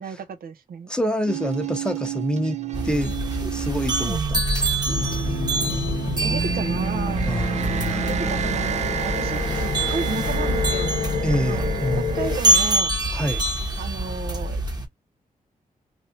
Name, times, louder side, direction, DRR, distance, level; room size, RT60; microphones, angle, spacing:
voice 1, 0.0-0.9 6.2-7.4 8.0-10.9 11.3-11.6 12.0-13.0 13.8-14.6, right 6 dB, 85° right, 0.6 m, -33 dB
voice 2, 0.9-2.6 2.8-3.1 3.4-4.8 7.3-8.3 11.2-12.1 13.1-13.4, equal, 5° left, 0.7 m, -27 dB
sound 1, 1.3-12.8, right 8 dB, 50° right, 0.4 m, -30 dB
sound 2, 2.7-14.8, right 1 dB, 30° right, 1.0 m, -26 dB
sound 3, 4.9-12.4, left 7 dB, 75° left, 0.8 m, -30 dB
3.3 x 2.6 x 2.6 m
wide cardioid pair, 135°, 15 cm